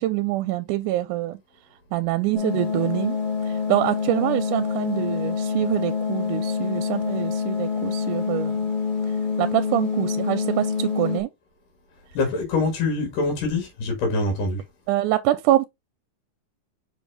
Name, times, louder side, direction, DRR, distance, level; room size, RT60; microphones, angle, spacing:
voice 1, 0.0-1.4 1.9-3.2 3.4-8.7 9.4-11.3 14.9-15.7, right 15 dB, 80° right, 2.0 m, -25 dB
sound 1, 2.3-11.2, left 5 dB, 25° left, 1.2 m, -26 dB
voice 2, 12.2-14.6, left 3 dB, 75° left, 3.4 m, -24 dB
6.1 x 5.0 x 3.6 m
omnidirectional pair, 3.8 m